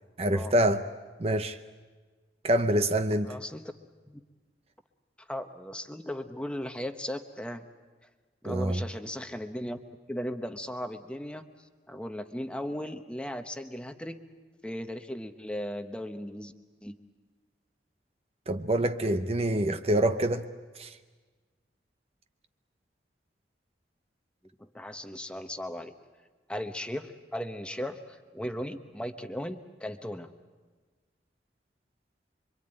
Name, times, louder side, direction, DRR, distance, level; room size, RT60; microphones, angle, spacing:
voice 1, 0.2-0.8 1.2-1.6 2.4-3.3 8.4-8.8 18.5-20.5 20.8-21.0, right 1 dB, 35° right, 9 dB, 0.8 m, -26 dB
voice 2, 3.2-3.7 4.1-4.2 5.2-7.7 8.4-9.8 10.1-14.2 14.6-16.5 16.8-17.0 24.6-25.9 26.5-30.3, equal, 5° left, 7 dB, 1.0 m, -37 dB
26.0 x 24.0 x 9.0 m, 1.4 s
head